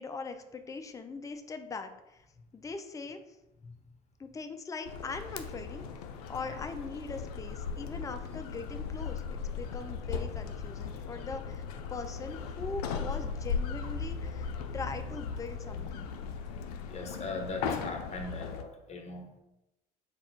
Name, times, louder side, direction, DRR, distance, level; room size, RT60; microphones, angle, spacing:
voice 1, 0.0-2.3 2.5-3.4 4.2-5.9 6.3-16.1, left 4 dB, 15° left, 7 dB, 0.5 m, -41 dB
sound 1, 4.8-18.6, left 5 dB, 80° left, 0.4 m, -37 dB
voice 2, 16.9-19.4, left 2 dB, 35° left, 3 dB, 1.0 m, -40 dB
4.1 x 2.4 x 4.5 m, 0.92 s
hypercardioid pair, 65°, 19 cm